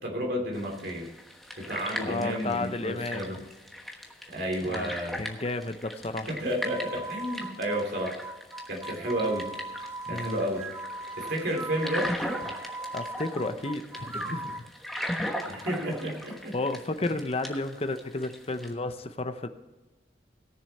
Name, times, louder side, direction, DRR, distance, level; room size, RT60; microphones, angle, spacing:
voice 1, 0.0-1.1 1.6-3.4 4.3-5.2 6.3-8.2 8.7-9.5 10.1-10.6 11.2-12.1 15.5-16.5, right 1 dB, 60° right, 1 dB, 3.0 m, -31 dB
sound 1, 0.5-18.7, left 1 dB, ahead, 1.1 m, -39 dB
voice 2, 2.0-3.3 4.6-4.9 5.2-6.3 10.1-10.4 12.9-14.6 15.9-16.0 16.5-19.5, left 2 dB, 30° left, 9 dB, 0.7 m, -32 dB
sound 2, 6.5-14.7, right 2 dB, 15° right, 0.6 m, -39 dB
18.0 x 6.9 x 4.2 m, 1.1 s
head